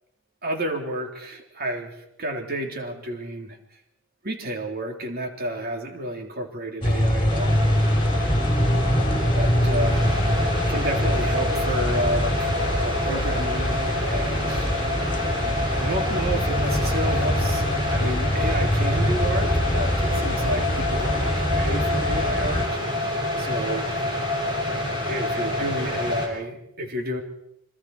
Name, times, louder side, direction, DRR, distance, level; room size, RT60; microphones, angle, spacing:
voice 1, 0.4-3.6 4.2-7.6 9.3-10.0 10.7-14.7 15.8-22.8 23.4-24.0 25.0-27.2, right 1 dB, 45° right, 3 dB, 3.5 m, -31 dB
sound 1, 6.8-22.7, equal, 25° left, 3.7 m, -24 dB
sound 2, 7.3-26.3, left 1 dB, 25° right, 6.6 m, -28 dB
27.0 x 25.5 x 4.8 m, 0.81 s
head